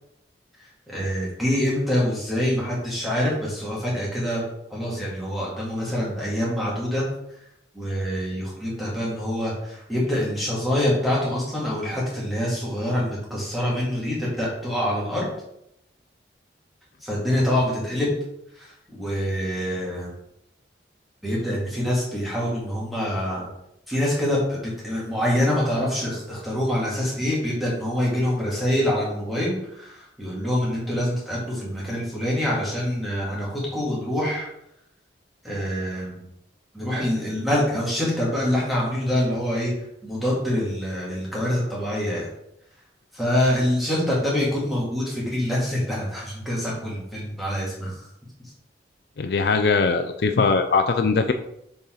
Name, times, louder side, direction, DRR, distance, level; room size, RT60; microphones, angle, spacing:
voice 1, 0.9-4.4 4.7-7.0 7.7-15.3 17.0-18.1 18.5-20.1 21.2-23.5 23.9-34.5 35.4-36.2 36.7-39.7 40.0-42.3 43.1-47.9, left 1 dB, ahead, -6 dB, 2.3 m, -25 dB
voice 2, 49.2-51.3, left 4 dB, 65° left, 8 dB, 0.4 m, -21 dB
6.9 x 4.2 x 3.9 m, 0.78 s
head